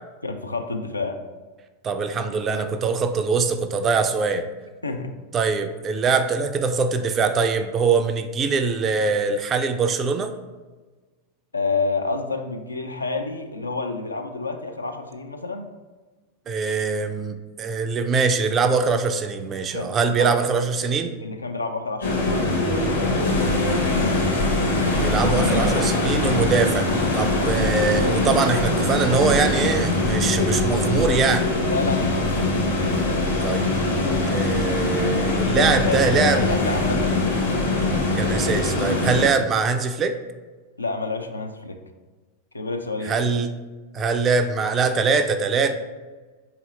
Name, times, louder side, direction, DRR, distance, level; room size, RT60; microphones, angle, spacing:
voice 1, 0.2-1.2 4.8-5.1 11.5-15.7 19.6-19.9 20.2-20.4 21.1-22.4 25.6-26.1 27.4-27.5 31.7-32.5 35.5-37.3 40.8-41.8 42.5-43.2, left 3 dB, 80° left, 5 dB, 0.4 m, -29 dB
voice 2, 1.8-4.5 5.3-10.3 16.5-21.1 25.0-26.9 27.1-31.5 33.4-33.7 34.3-36.4 38.2-40.2 43.0-43.5 43.9-45.8, right 5 dB, 25° right, 8 dB, 0.3 m, -23 dB
sound 1, 22.0-39.3, left 2 dB, 65° left, 1.0 m, -22 dB
3.9 x 2.9 x 4.0 m, 1.3 s
figure-of-eight pair, 90°, 0 cm